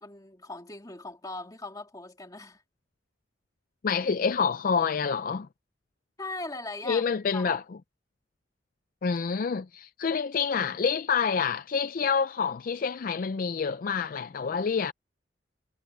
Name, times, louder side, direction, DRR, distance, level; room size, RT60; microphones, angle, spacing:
voice 1, 0.0-2.6 6.2-7.0 7.3-7.6, left 2 dB, 20° left, 2.4 m, -39 dB
voice 2, 3.8-5.5 6.9-7.6 9.0-14.9, left 6 dB, 50° left, 0.4 m, -27 dB
head